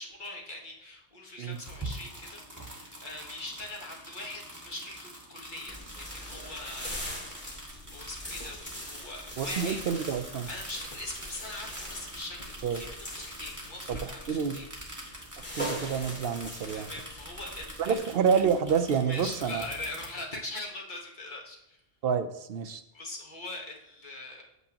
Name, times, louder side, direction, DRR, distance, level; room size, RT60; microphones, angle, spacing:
voice 1, 0.0-7.0 7.4-9.8 10.3-15.3 16.7-18.1 19.0-21.8 22.9-24.4, left 2 dB, 50° left, -1 dB, 1.3 m, -42 dB
sound 1, 1.5-20.1, right 1 dB, 15° right, 1.6 m, -45 dB
sound 2, 5.7-18.0, equal, 10° left, 2.5 m, -41 dB
voice 2, 9.4-10.5 12.6-12.8 13.9-14.6 15.6-16.9 17.8-19.6 22.0-22.8, right 7 dB, 65° right, 9 dB, 0.8 m, -28 dB
8.2 x 7.6 x 2.9 m, 0.83 s
omnidirectional pair, 1.1 m